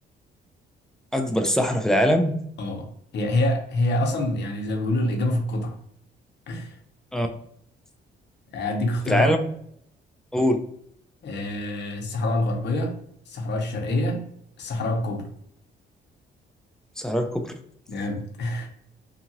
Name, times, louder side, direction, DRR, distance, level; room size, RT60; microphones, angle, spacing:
voice 1, 1.1-2.3 7.1-7.3 9.1-9.4 10.3-10.6 17.0-17.5, equal, 5° left, 4 dB, 0.4 m, -22 dB
voice 2, 3.1-5.8 6.5-6.8 8.5-9.3 11.2-13.0 13.3-14.2 14.6-15.2 17.9-18.7, left 1 dB, 60° left, 2 dB, 0.8 m, -26 dB
2.8 x 2.5 x 2.8 m, 0.68 s
cardioid pair, 90°, 20 cm